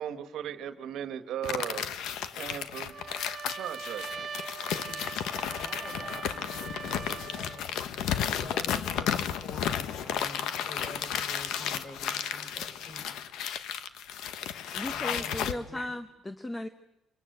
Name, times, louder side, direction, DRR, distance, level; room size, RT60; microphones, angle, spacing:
voice 1, 0.0-1.9 2.3-2.9 3.5-4.1, right 10 dB, 70° right, 10 dB, 1.6 m, -36 dB
sound 1, 1.4-15.5, left 9 dB, 80° left, 1.3 m, -33 dB
Trumpet, 2.8-7.7, right 6 dB, 35° right, 2.1 m, -41 dB
voice 2, 4.8-5.3 5.5-7.7 8.3-13.0 14.9-15.8, left 2 dB, 35° left, 6 dB, 5.4 m, -47 dB
voice 3, 14.7-16.7, left 1 dB, 10° left, 10 dB, 1.0 m, -36 dB
26.5 x 23.5 x 8.1 m, 0.90 s
cardioid pair, 145°, 0 cm